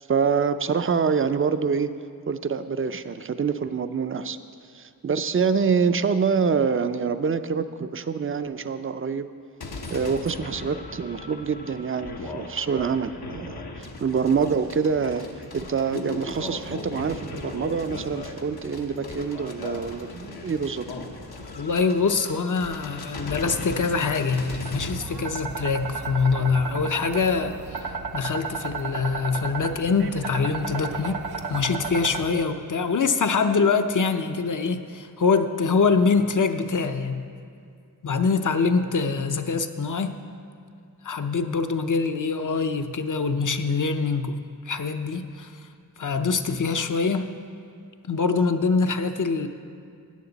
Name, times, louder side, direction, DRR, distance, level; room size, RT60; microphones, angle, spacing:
voice 1, 0.1-1.9 2.3-4.4 4.7-9.3 9.9-20.9, right 5 dB, 35° right, 11 dB, 0.4 m, -26 dB
sound 1, 9.6-25.0, left 2 dB, 80° left, 1.0 m, -37 dB
voice 2, 21.6-31.2 31.5-37.2 38.0-40.2 41.0-44.4 44.7-45.5 46.0-47.3 48.1-49.5, left 4 dB, 55° left, 8 dB, 0.6 m, -24 dB
sound 2, 24.6-32.4, right 4 dB, 80° right, 0.7 m, -33 dB
14.0 x 9.2 x 4.0 m, 2.4 s
wide cardioid pair, 75°, 37 cm